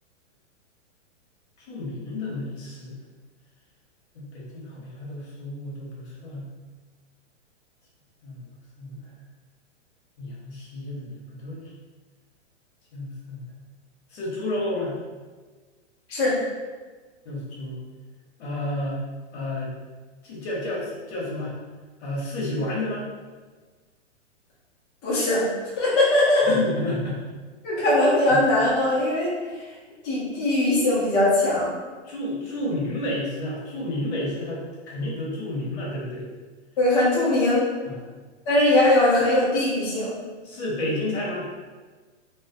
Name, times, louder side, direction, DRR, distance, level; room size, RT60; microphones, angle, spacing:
voice 1, 1.7-2.9 4.1-6.5 8.2-8.4 8.8-9.0 10.2-11.6 12.9-13.4 14.1-15.0 17.2-17.8 18.4-19.0 19.3-19.7 20.2-21.5 22.0-23.1 26.5-27.2 28.3-28.4 32.1-36.2 37.9-38.0 40.4-41.5, left 1 dB, 60° left, -4 dB, 1.0 m, -31 dB
voice 2, 25.0-25.5 25.8-26.6 27.6-29.3 30.0-31.8 36.8-37.7 38.5-40.1, left 1 dB, 25° left, -9 dB, 0.5 m, -20 dB
2.4 x 2.0 x 2.5 m, 1.4 s
hypercardioid pair, 150°, 36 cm